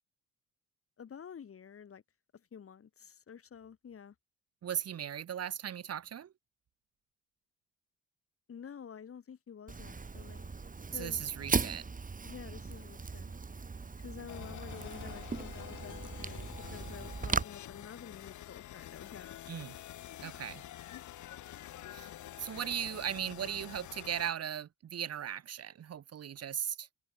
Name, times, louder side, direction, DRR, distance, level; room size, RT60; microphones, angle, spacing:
voice 1, 1.0-2.0 2.3-4.1 8.5-10.5 10.9-11.3 12.2-13.3 14.0-19.4, left 7 dB, 50° left, 3.9 m, -49 dB
voice 2, 4.6-6.3 10.9-11.8 19.5-19.8 20.2-20.6 21.9-22.1 22.4-26.9, right 9 dB, 55° right, 1.7 m, -37 dB
Fire, 9.7-17.4, right 4 dB, 25° right, 3.3 m, -38 dB
sound 1, 14.3-24.3, left 13 dB, 75° left, 2.2 m, -47 dB
cardioid pair, 90°, 30 cm